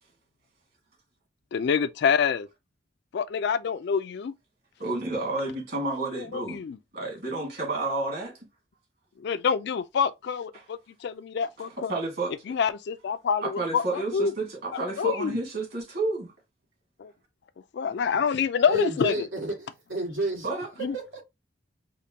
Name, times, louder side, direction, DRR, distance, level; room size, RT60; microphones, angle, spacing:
voice 1, 1.5-2.5 3.1-4.3 6.2-6.8 9.2-12.0 12.5-14.3 14.7-15.4 17.0-17.1 17.7-19.1 20.8-21.0, left 6 dB, 55° left, 0.3 m, -27 dB
voice 2, 4.8-6.6 6.9-8.4 10.5-10.6 11.9-12.3 13.4-16.3 20.4-20.7, right 2 dB, 55° right, 1.9 m, -30 dB
voice 3, 18.7-20.5 20.9-21.2, right 2 dB, 85° right, 1.8 m, -31 dB
5.0 x 2.2 x 2.8 m
head